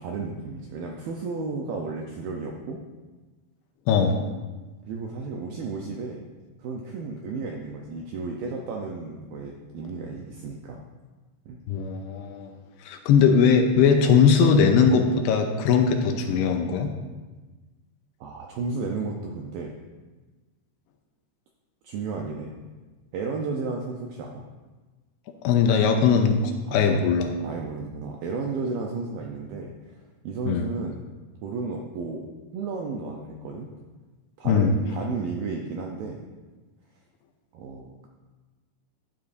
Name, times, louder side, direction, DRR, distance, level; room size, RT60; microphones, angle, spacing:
voice 1, 0.0-2.8 4.9-6.2 6.6-10.8 11.5-11.6 18.2-19.7 21.8-22.5 23.1-24.4 26.7-27.1 27.4-31.0 31.4-32.3 32.5-33.7 34.4-36.2 37.5-38.1, right 4 dB, 80° right, 0 dB, 2.0 m, -33 dB
voice 2, 3.9-4.3 11.7-12.5 12.9-16.9 25.4-27.4 30.5-30.7 34.5-34.7, left 6 dB, 85° left, 4 dB, 2.7 m, -20 dB
14.5 x 9.7 x 2.6 m, 1.3 s
omnidirectional pair, 5.0 m